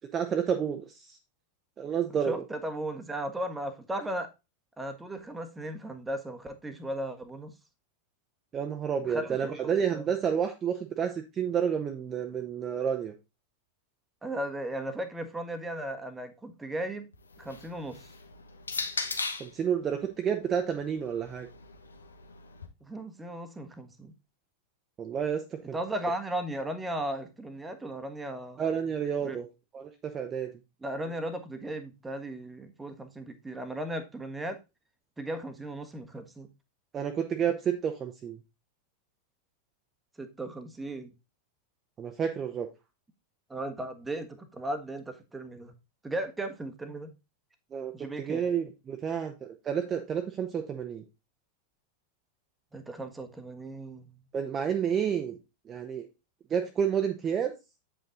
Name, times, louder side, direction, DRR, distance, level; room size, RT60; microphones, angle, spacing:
voice 1, 0.1-1.2 1.8-2.3 8.5-13.1 19.4-21.5 25.0-25.8 28.6-29.4 29.7-30.5 36.9-38.4 42.0-42.7 47.7-47.9 48.2-49.3 49.6-51.0 54.3-55.4 55.7-56.1 56.5-57.5, right 7 dB, 25° right, 5 dB, 1.0 m, -30 dB
voice 2, 2.3-4.3 4.8-7.5 9.0-10.1 14.2-17.1 17.4-18.1 22.8-24.1 25.7-28.6 29.2-29.4 30.8-34.6 35.2-36.5 40.2-41.1 43.5-45.7 46.0-47.1 47.9-48.4 52.7-54.2, right 1 dB, 10° right, 8 dB, 1.4 m, -36 dB
sound 1, 17.1-19.6 20.5-22.7, left 4 dB, 75° left, 1.2 m, -38 dB
8.8 x 5.5 x 3.9 m, 0.26 s
figure-of-eight pair, 90°, 0 cm